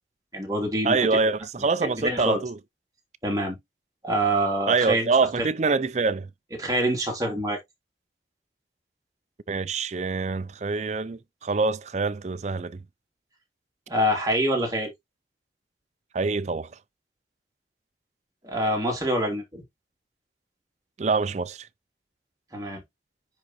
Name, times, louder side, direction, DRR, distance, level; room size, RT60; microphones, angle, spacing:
voice 1, 0.3-1.0 1.6-2.4 3.2-3.6 4.0-5.1 5.4-5.5 6.6-7.6 13.9-14.9 18.4-19.6 22.5-22.8, right 1 dB, 20° right, 2.8 m, -26 dB
voice 2, 0.8-2.6 4.7-6.3 9.5-12.8 16.1-16.7 21.0-21.7, right 4 dB, 40° right, 0.4 m, -25 dB
9.9 x 3.8 x 3.0 m
head